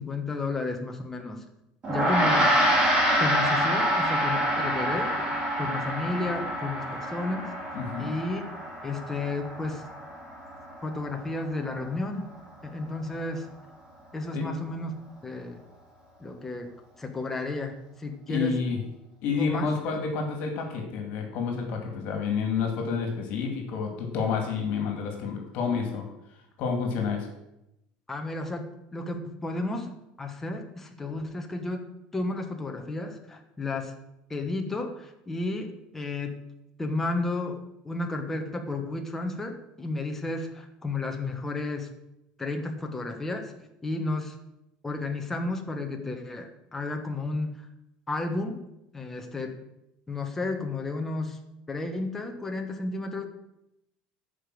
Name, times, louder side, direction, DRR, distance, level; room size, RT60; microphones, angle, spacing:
voice 1, 0.0-1.4 1.9-2.7 3.2-5.3 5.6-7.5 8.0-8.4 8.8-9.8 10.8-12.3 12.6-13.5 14.1-15.0 15.2-15.6 16.2-16.7 17.0-18.6 19.3-19.7 28.1-33.9 34.3-36.4 36.8-41.9 42.4-43.5 43.8-44.4 44.8-47.7 48.1-48.6 48.9-49.6 50.1-51.4 51.7-53.2, left 2 dB, 10° left, 4 dB, 1.2 m, -32 dB
Gong, 1.8-11.4, equal, 30° right, 3.5 m, -27 dB
voice 2, 7.7-8.1 14.3-14.5 18.3-18.8 19.2-26.1 26.6-27.3, left 5 dB, 55° left, 3 dB, 2.4 m, -29 dB
10.0 x 5.2 x 7.7 m, 0.86 s
cardioid pair, 150°, 3 cm